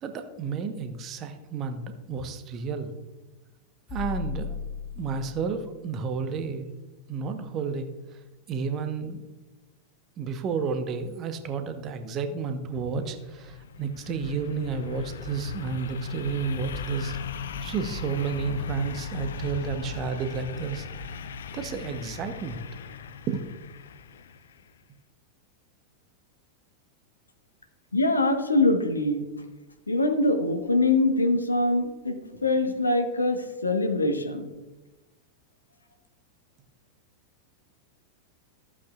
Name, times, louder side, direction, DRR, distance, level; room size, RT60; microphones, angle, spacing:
voice 1, 0.0-1.8 2.1-2.9 3.9-4.6 4.9-6.7 7.1-7.9 8.5-9.2 10.2-20.9 21.5-22.6 23.3-23.4, right 5 dB, 30° right, 7 dB, 1.0 m, -31 dB
sound 1, 3.9-5.7, left 5 dB, 35° left, 2.5 m, -36 dB
sound 2, 12.9-24.6, left 4 dB, 65° left, 0.5 m, -37 dB
voice 2, 27.9-29.3 29.9-32.2 32.4-34.5, left 2 dB, 80° left, 6 dB, 1.2 m, -23 dB
14.5 x 8.4 x 2.4 m, 1.1 s
figure-of-eight pair, 90°, 0 cm